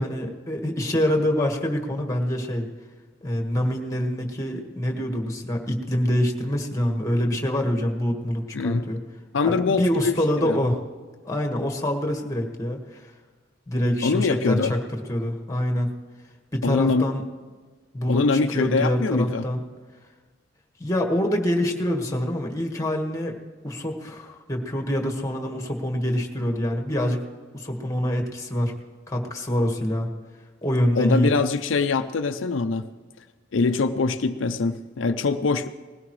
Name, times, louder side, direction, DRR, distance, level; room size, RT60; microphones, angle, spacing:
voice 1, 0.0-2.7 3.2-9.0 9.4-10.8 11.2-13.1 13.7-15.9 16.5-17.2 17.9-19.6 20.8-23.4 23.6-27.2 27.5-28.7 29.1-30.1 30.6-31.3, equal, 15° left, 2 dB, 1.6 m, -25 dB
voice 2, 9.3-10.1 10.4-10.6 14.0-14.7 16.6-17.1 18.1-19.4 31.0-32.8 33.5-35.7, left 4 dB, 80° left, 9 dB, 0.5 m, -23 dB
20.0 x 16.5 x 3.2 m, 1.4 s
head